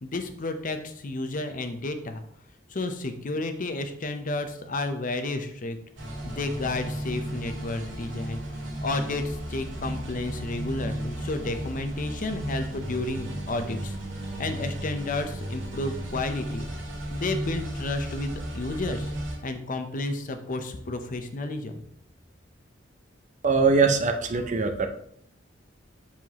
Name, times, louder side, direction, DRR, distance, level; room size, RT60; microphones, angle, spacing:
voice 1, 0.0-2.2 2.7-5.8 6.2-14.0 14.4-16.7 17.1-19.1 19.4-21.8, left 2 dB, 45° left, 8 dB, 0.7 m, -31 dB
sound 1, 6.0-19.4, right 1 dB, 80° right, 2.5 m, -34 dB
voice 2, 23.4-24.9, right 4 dB, 40° right, 7 dB, 0.6 m, -22 dB
7.2 x 5.9 x 2.9 m, 0.66 s
head